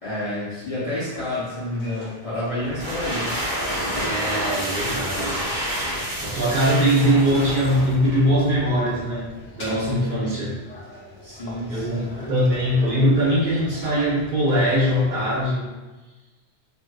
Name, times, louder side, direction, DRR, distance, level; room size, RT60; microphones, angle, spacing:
voice 1, 0.0-3.3 10.2-10.5 11.2-12.3, left 1 dB, 40° left, -10 dB, 0.6 m, -29 dB
sound 1, 1.0-15.5, left 1 dB, 90° left, 1.2 m, -41 dB
sound 2, 2.6-8.3, equal, 25° right, 0.6 m, -29 dB
voice 2, 3.9-5.4 6.2-10.6 11.7-15.7, equal, 50° right, -7 dB, 0.9 m, -21 dB
2.9 x 2.5 x 2.2 m, 1.2 s
omnidirectional pair, 1.2 m